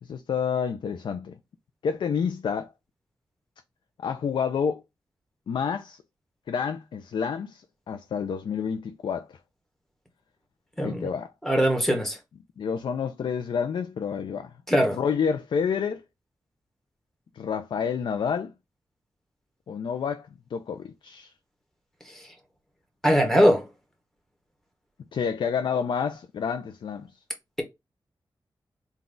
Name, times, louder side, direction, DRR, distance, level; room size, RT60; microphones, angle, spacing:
voice 1, 0.0-1.4 1.8-2.7 4.0-4.8 5.5-6.0 6.5-9.4 10.8-11.3 12.6-14.5 14.8-16.0 17.3-18.5 19.7-21.3 25.1-27.2, left 6 dB, 85° left, 0.4 m, -29 dB
voice 2, 10.8-11.1 11.4-12.2 14.7-15.0 23.0-23.7, equal, 5° left, 1.4 m, -21 dB
3.9 x 2.3 x 3.8 m
wide cardioid pair, 90°, 8 cm